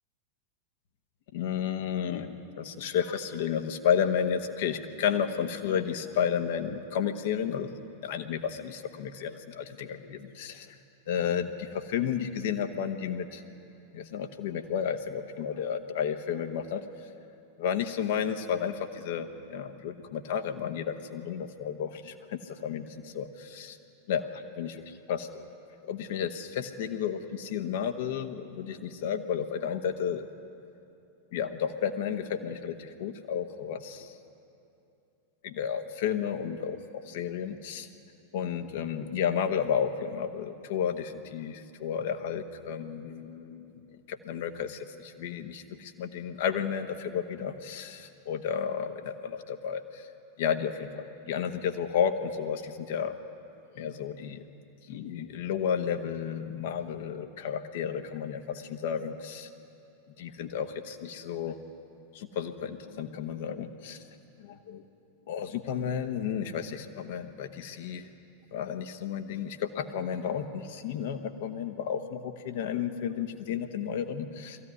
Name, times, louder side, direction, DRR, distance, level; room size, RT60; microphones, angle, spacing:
voice 1, 1.3-10.8 11.1-13.4 13.9-16.8 17.6-23.8 24.1-25.4 25.8-30.3 31.3-34.1 35.4-37.9 38.3-43.7 44.1-50.1 50.4-53.1 53.7-54.4 54.9-59.5 60.2-61.6 62.1-64.0 64.4-64.8 65.3-68.1 68.5-74.6, left 8 dB, 55° left, 7 dB, 1.2 m, -32 dB
21.5 x 15.0 x 9.5 m, 2.8 s
figure-of-eight pair, 90°, 0 cm